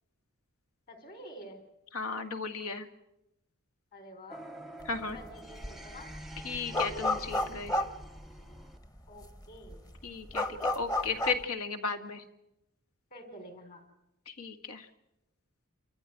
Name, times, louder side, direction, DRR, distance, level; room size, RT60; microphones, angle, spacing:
voice 1, 0.9-1.7 3.9-4.5 4.9-6.1 9.1-9.8 13.1-13.8, equal, 40° left, 6 dB, 4.5 m, -49 dB
voice 2, 1.9-2.9 4.8-5.2 6.4-7.8 10.0-12.2 14.3-14.9, left 4 dB, 75° left, 7 dB, 1.9 m, -35 dB
sound 1, 4.3-8.8, right 1 dB, ahead, 0.9 m, -48 dB
sound 2, 4.9-5.3 5.6-8.7 9.2-9.3 9.5-11.4, left 2 dB, 15° left, 1.2 m, -32 dB
29.0 x 14.5 x 9.4 m, 0.91 s
head